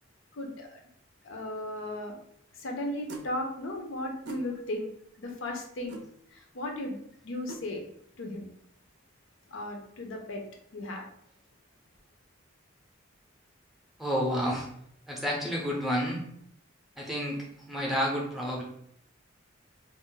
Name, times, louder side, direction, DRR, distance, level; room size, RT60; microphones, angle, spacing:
voice 1, 0.3-0.8 1.2-2.1 2.5-4.9 5.2-6.0 6.3-7.8 8.2-8.5 9.5-10.4 10.7-11.0, left 1 dB, 80° left, 2 dB, 0.6 m, -36 dB
sound 1, 3.1-3.3 4.3-4.5 5.9-6.1 7.5-7.6, right 2 dB, 60° right, 0.5 m, -40 dB
voice 2, 14.0-14.7 15.1-16.2 17.0-18.6, equal, ahead, -3 dB, 0.5 m, -30 dB
2.5 x 2.1 x 3.7 m, 0.70 s
head